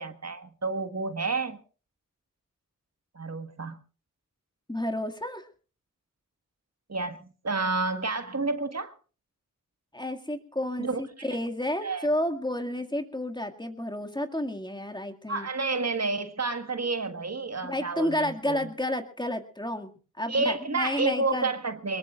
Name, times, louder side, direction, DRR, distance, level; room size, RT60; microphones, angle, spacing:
voice 1, 0.0-1.6 3.1-3.8 6.9-8.9 10.8-11.0 11.8-12.1 15.3-18.7 20.3-22.0, right 3 dB, 55° right, 8 dB, 1.5 m, -30 dB
voice 2, 4.7-5.5 9.9-15.5 17.6-19.9 20.2-21.5, left 1 dB, 15° left, 5 dB, 2.0 m, -31 dB
23.5 x 21.5 x 2.4 m, 0.36 s
wide cardioid pair, 60°, 32 cm